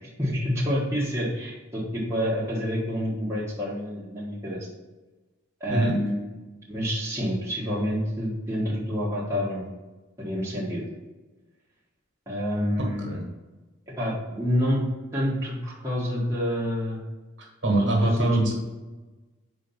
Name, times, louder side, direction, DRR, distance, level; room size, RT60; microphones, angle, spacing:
voice 1, 0.0-4.6 5.6-6.2 6.7-9.7 10.2-10.8 12.3-13.1 13.9-14.8 15.1-17.0 17.8-18.3, equal, 15° right, -7 dB, 1.4 m, -28 dB
voice 2, 12.8-13.2 17.6-18.5, right 2 dB, 65° right, 0 dB, 1.5 m, -23 dB
4.5 x 4.2 x 5.7 m, 1.2 s
head